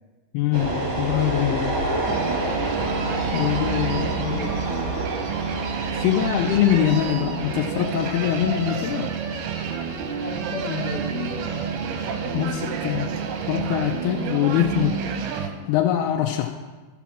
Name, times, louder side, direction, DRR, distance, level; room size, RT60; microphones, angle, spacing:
voice 1, 0.3-1.6 3.3-4.2 6.0-9.1 12.3-13.1 13.5-15.0 15.3-16.5, left 11 dB, 85° left, 2 dB, 2.3 m, -23 dB
sound 1, 0.5-13.6, right 1 dB, 40° right, 2.0 m, -30 dB
sound 2, 2.1-15.5, right 6 dB, 75° right, 2.6 m, -29 dB
voice 2, 4.2-4.6 10.1-11.5 12.0-12.9 14.1-14.3, left 3 dB, 45° left, -4 dB, 2.1 m, -33 dB
12.5 x 5.9 x 7.2 m, 1.3 s
omnidirectional pair, 5.2 m